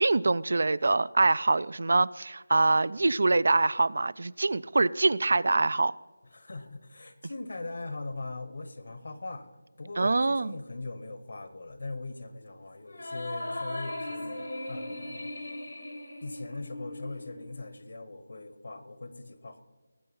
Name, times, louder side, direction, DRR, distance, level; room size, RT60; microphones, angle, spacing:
voice 1, 0.0-5.9 10.0-10.5, right 3 dB, 60° right, 21 dB, 0.3 m, -24 dB
voice 2, 6.3-9.5 9.8-15.3 16.2-19.6, left 2 dB, 65° left, 11 dB, 1.3 m, -40 dB
sound 1, 12.9-17.6, left 1 dB, 90° left, 2.8 m, -38 dB
19.0 x 7.6 x 5.6 m, 1.2 s
figure-of-eight pair, 170°, 0 cm